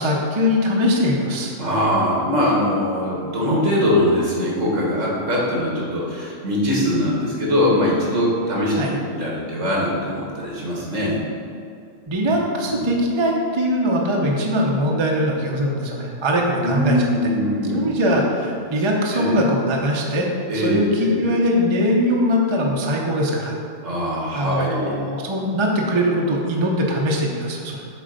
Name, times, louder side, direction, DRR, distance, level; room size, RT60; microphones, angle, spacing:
voice 1, 0.0-1.5 8.8-9.0 12.1-17.1 17.6-20.3 20.5-23.6 24.3-27.8, equal, 30° right, -1 dB, 0.6 m, -21 dB
voice 2, 1.6-11.2 12.2-12.3 12.6-12.8 16.6-18.2 19.1-19.3 20.5-21.3 23.8-24.9, left 1 dB, 70° right, -4 dB, 2.0 m, -22 dB
7.5 x 3.9 x 5.3 m, 2.4 s
omnidirectional pair, 1.4 m